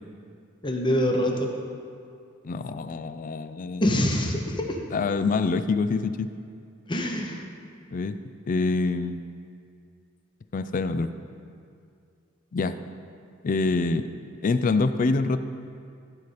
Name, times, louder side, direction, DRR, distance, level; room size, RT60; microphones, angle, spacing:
voice 1, 0.6-1.5 3.8-4.8 6.9-7.4, equal, 25° left, 2 dB, 0.9 m, -25 dB
voice 2, 2.4-3.9 4.9-6.3 7.9-8.2 8.5-9.2 10.5-11.1 12.5-12.7 13.4-14.1 14.4-15.4, left 3 dB, 40° left, 11 dB, 0.4 m, -25 dB
14.5 x 4.9 x 4.1 m, 2.4 s
head